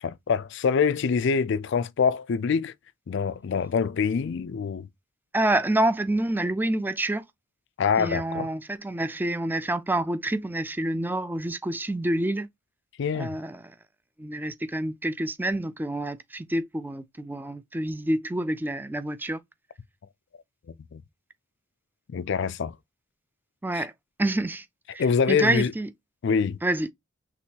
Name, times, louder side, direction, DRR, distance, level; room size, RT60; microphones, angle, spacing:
voice 1, 0.0-2.7 3.1-4.9 7.8-8.5 13.0-13.4 20.9-21.0 22.1-22.8 23.7-23.9 25.0-25.7 26.2-26.6, left 6 dB, 65° left, 0.4 m, -25 dB
voice 2, 5.3-7.2 8.0-12.5 13.1-13.6 14.2-19.4 23.6-23.9 24.2-24.6 24.9-25.9 26.6-26.9, right 1 dB, 10° right, 0.4 m, -27 dB
6.0 x 3.1 x 2.8 m
head